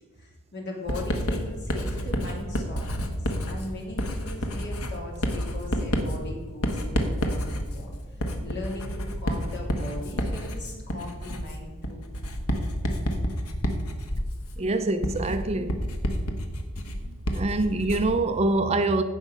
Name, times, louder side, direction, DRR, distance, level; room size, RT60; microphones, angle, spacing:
voice 1, 0.2-7.9 8.4-12.1, left 1 dB, 50° left, 3.1 m, -39 dB
Writing, 0.9-18.2, equal, 75° left, 1.4 m, -29 dB
voice 2, 14.6-15.9 17.3-19.0, right 2 dB, 30° right, 0.5 m, -25 dB
16.0 x 5.4 x 5.6 m
head